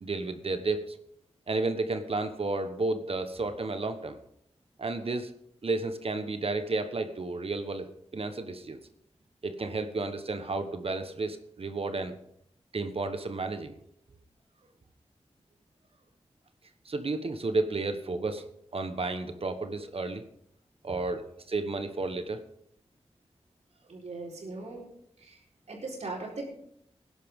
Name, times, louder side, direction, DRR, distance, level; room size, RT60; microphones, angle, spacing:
voice 1, 0.0-1.0 1.5-4.2 4.8-5.3 5.6-7.9 8.1-8.8 9.4-12.1 12.7-13.7 16.8-18.4 18.7-20.2 20.8-21.2 21.5-22.4, right 3 dB, 60° right, 8 dB, 1.2 m, -32 dB
voice 2, 23.9-24.9 25.2-25.4 25.7-26.4, right 3 dB, 85° right, -2 dB, 4.4 m, -39 dB
19.5 x 11.0 x 3.7 m, 0.72 s
wide cardioid pair, 85°, 11 cm